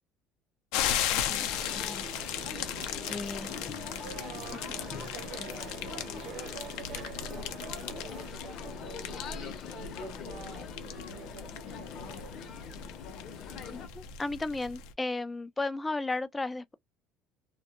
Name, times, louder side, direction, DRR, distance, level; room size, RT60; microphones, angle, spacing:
sound 1, 0.7-14.9, left 9 dB, 80° left, 0.5 m, -37 dB
voice 1, 1.1-2.1 3.1-3.5 13.7-16.7, left 2 dB, 10° left, 0.3 m, -35 dB
sound 2, 1.2-13.9, left 7 dB, 45° left, 0.7 m, -43 dB
sound 3, 1.5-8.3, right 6 dB, 50° right, 0.9 m, -47 dB
voice 2, 2.5-2.9 4.0-12.8, right 8 dB, 90° right, 0.8 m, -49 dB
2.2 x 2.1 x 2.8 m
cardioid pair, 130°, 0 cm